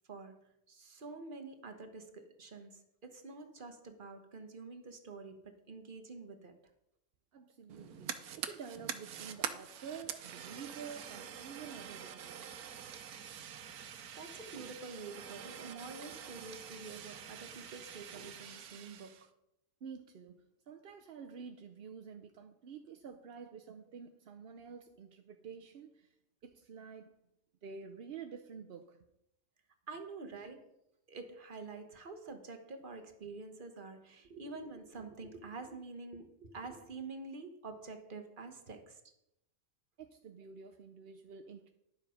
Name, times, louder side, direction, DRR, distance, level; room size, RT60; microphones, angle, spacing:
voice 1, 0.1-6.5 14.1-19.3 29.9-30.7 31.1-39.0, right 3 dB, 35° right, 1.2 m, -47 dB
voice 2, 7.3-12.6 19.8-26.1 26.4-27.2 27.6-29.0 40.0-41.7, right 6 dB, 55° right, 0.7 m, -49 dB
Fire, 7.7-19.3, right 8 dB, 80° right, 1.3 m, -45 dB
11.0 x 7.3 x 5.1 m
omnidirectional pair, 1.6 m